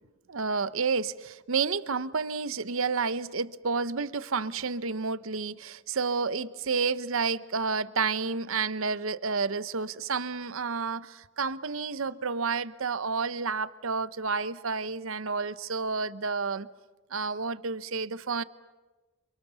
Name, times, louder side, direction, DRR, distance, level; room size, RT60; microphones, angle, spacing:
voice 1, 0.3-16.7 17.1-18.4, right 4 dB, 65° right, 0.8 m, -30 dB
29.5 x 27.0 x 6.9 m
head